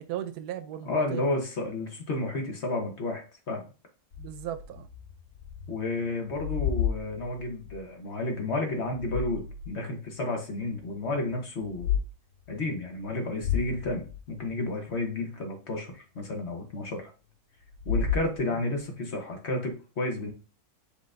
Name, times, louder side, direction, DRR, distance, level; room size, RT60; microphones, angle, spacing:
voice 1, 0.0-1.3 4.2-4.9 18.5-18.6, right 12 dB, 80° right, 1.1 m, -37 dB
voice 2, 0.8-3.6 5.7-12.0 12.5-17.1 17.8-20.3, left 2 dB, 50° left, 1.2 m, -31 dB
sound 1, 4.1-5.8 6.1-7.8 8.7-9.8 10.2-10.3 11.6-12.0 12.5-12.6 13.0-13.1 13.4-14.7 17.7-18.8, left 7 dB, 75° left, 0.5 m, -32 dB
5.6 x 3.4 x 2.5 m
omnidirectional pair, 1.6 m